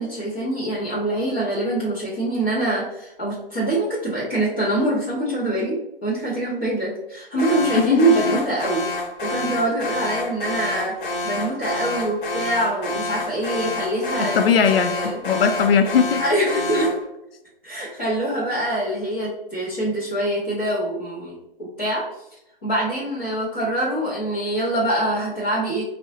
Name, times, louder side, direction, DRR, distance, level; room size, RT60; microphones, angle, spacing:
voice 1, 0.0-5.8 6.0-8.8 9.2-14.4 14.9-15.4 16.2-16.9 17.6-21.4 21.8-22.0 22.6-25.8, right 1 dB, 10° left, -11 dB, 0.3 m, -24 dB
Alarm, 7.4-17.1, left 2 dB, 55° left, 0.8 m, -29 dB
voice 2, 7.7-8.4 14.2-16.2, left 6 dB, 75° left, 7 dB, 0.5 m, -19 dB
3.5 x 2.0 x 2.7 m, 0.88 s
hypercardioid pair, 140°, 30 cm